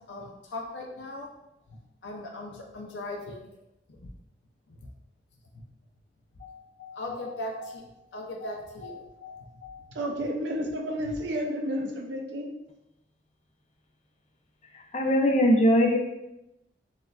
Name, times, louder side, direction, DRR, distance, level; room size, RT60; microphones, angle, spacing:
voice 1, 0.1-1.3 1.7-3.5 3.9-4.1 4.7-4.9 5.5-5.6 6.4-10.0 11.0-11.2, left 2 dB, 85° left, 0 dB, 0.5 m, -39 dB
voice 2, 9.9-12.6, equal, 80° right, 1 dB, 0.5 m, -31 dB
voice 3, 14.7-16.0, equal, 40° left, 0 dB, 0.6 m, -21 dB
6.3 x 2.5 x 2.3 m, 0.90 s
head